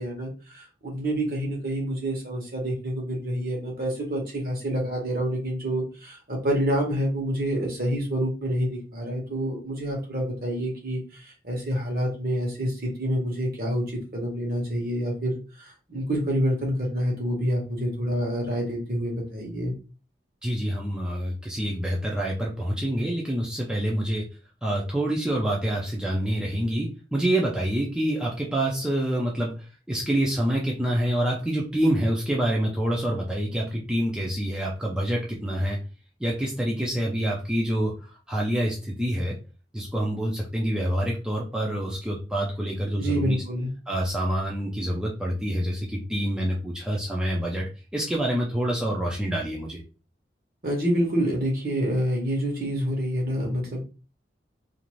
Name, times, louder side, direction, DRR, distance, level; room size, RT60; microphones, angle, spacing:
voice 1, 0.0-19.7 43.0-43.7 50.6-53.8, equal, 55° right, 0 dB, 1.0 m, -27 dB
voice 2, 20.4-24.3 24.6-35.8 36.2-39.4 39.7-43.4 43.9-49.8, right 1 dB, 5° right, -3 dB, 0.4 m, -27 dB
2.5 x 2.5 x 3.0 m, 0.34 s
head